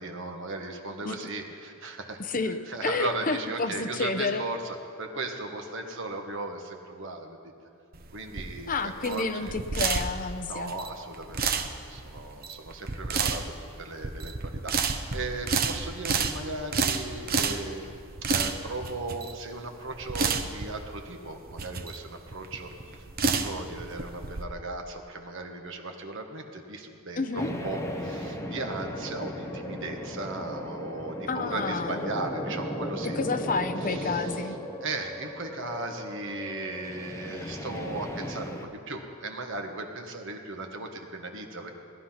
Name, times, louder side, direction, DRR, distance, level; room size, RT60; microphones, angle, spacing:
voice 1, 0.0-2.2 2.5-7.4 8.1-9.5 10.5-17.8 18.2-23.1 23.3-33.2 33.8-34.5 34.8-41.7, right 2 dB, 60° right, 3 dB, 1.5 m, -37 dB
voice 2, 2.2-4.4 8.7-10.8 27.2-27.5 31.3-32.1 33.2-34.6, left 3 dB, 40° left, 8 dB, 0.7 m, -30 dB
sound 1, 7.9-24.4, right 5 dB, 45° right, 0.8 m, -30 dB
sound 2, 27.4-38.7, equal, 15° left, 1.0 m, -36 dB
18.0 x 11.5 x 5.8 m, 2.6 s
head